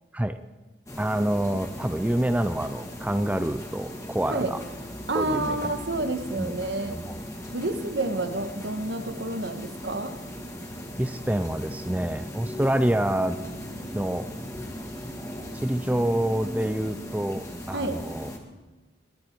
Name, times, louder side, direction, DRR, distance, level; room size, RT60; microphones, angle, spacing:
sound 1, 0.9-18.4, equal, 15° left, 1.8 m, -38 dB
voice 1, 1.0-4.6 5.1-5.7 6.4-6.6 6.9-7.2 11.0-13.4 13.9-14.3 15.5-18.3, right 1 dB, 10° right, 10 dB, 0.4 m, -27 dB
voice 2, 5.1-7.0 7.5-10.1 17.7-18.0, right 2 dB, 75° right, 7 dB, 1.4 m, -29 dB
22.0 x 10.5 x 4.6 m, 1.2 s
head